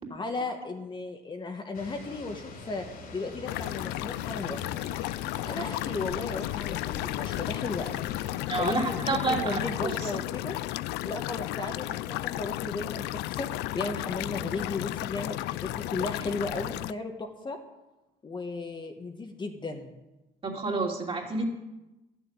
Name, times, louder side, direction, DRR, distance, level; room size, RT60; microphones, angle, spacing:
voice 1, 0.1-2.9 3.1-4.7 5.5-8.0 8.6-9.0 9.3-10.6 11.0-17.6 18.2-19.9, left 3 dB, 30° left, 3 dB, 1.3 m, -35 dB
sound 1, 1.7-8.4, left 2 dB, 60° left, 2.9 m, -45 dB
sound 2, 3.5-16.9, left 17 dB, 85° left, 0.4 m, -33 dB
voice 2, 8.5-10.1 20.4-21.5, right 3 dB, 35° right, -1 dB, 3.0 m, -30 dB
12.0 x 7.1 x 9.0 m, 1.0 s
cardioid pair, 110°, 17 cm